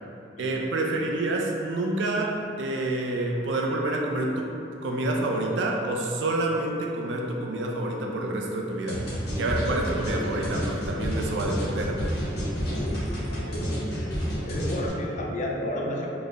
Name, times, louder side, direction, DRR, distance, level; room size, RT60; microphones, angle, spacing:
voice 1, 0.4-4.5 4.8-9.0 9.4-12.0, right 2 dB, 75° right, 0 dB, 0.4 m, -28 dB
sound 1, 8.9-14.9, equal, 60° left, 1.0 m, -30 dB
voice 2, 12.6-13.2 13.5-13.9 14.5-16.1, left 1 dB, 45° left, -1 dB, 0.4 m, -32 dB
3.3 x 2.0 x 3.9 m, 2.7 s
head